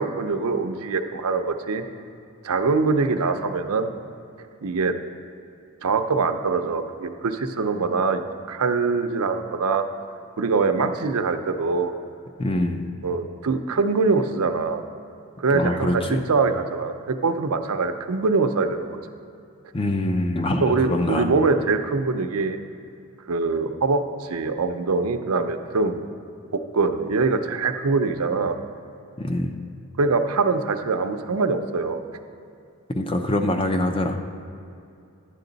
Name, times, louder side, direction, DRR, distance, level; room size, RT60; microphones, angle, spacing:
voice 1, 0.0-1.8 2.4-3.9 4.6-4.9 5.8-9.8 10.4-11.9 13.0-14.8 15.4-19.0 20.6-22.6 23.3-26.0 26.5-28.6 30.0-32.0, right 4 dB, 80° right, 7 dB, 0.6 m, -23 dB
voice 2, 12.4-12.9 15.5-16.2 19.7-21.3 29.2-29.5 32.9-34.2, left 1 dB, 25° left, 5 dB, 0.5 m, -24 dB
11.0 x 8.4 x 3.9 m, 2.6 s
head